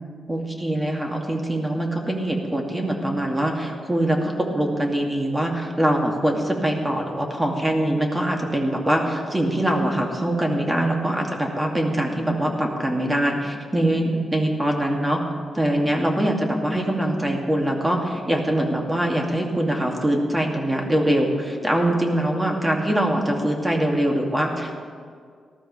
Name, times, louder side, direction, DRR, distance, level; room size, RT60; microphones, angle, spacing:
voice 1, 0.3-15.2 15.5-24.8, right 1 dB, 15° right, 1 dB, 2.5 m, -23 dB
18.5 x 13.0 x 3.4 m, 2.1 s
supercardioid pair, 55°, 0 cm